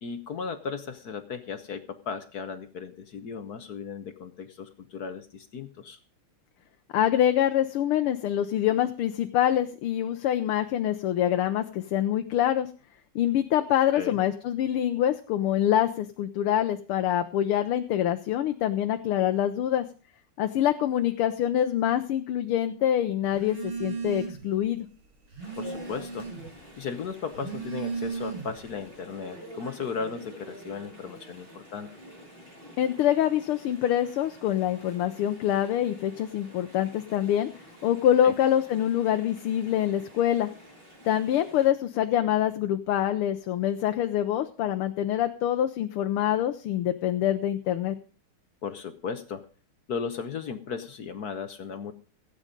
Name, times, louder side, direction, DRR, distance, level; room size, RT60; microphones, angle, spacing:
voice 1, 0.0-6.0 13.9-14.2 25.6-26.3 26.8-31.9 38.2-38.3 48.6-49.4 49.9-51.9, left 6 dB, 55° left, 10 dB, 1.2 m, -36 dB
voice 2, 6.9-12.7 13.2-19.9 20.4-24.9 32.8-37.5 37.8-40.5 41.1-48.0, left 11 dB, 85° left, 7 dB, 1.7 m, -25 dB
Telephone, 23.3-24.5 24.9-26.6 27.2-28.7, right 5 dB, 85° right, 4.3 m, -36 dB
Chatter / Stream, 25.4-41.7, equal, 55° right, 7.9 m, -48 dB
16.5 x 8.8 x 5.2 m, 0.38 s
omnidirectional pair, 2.4 m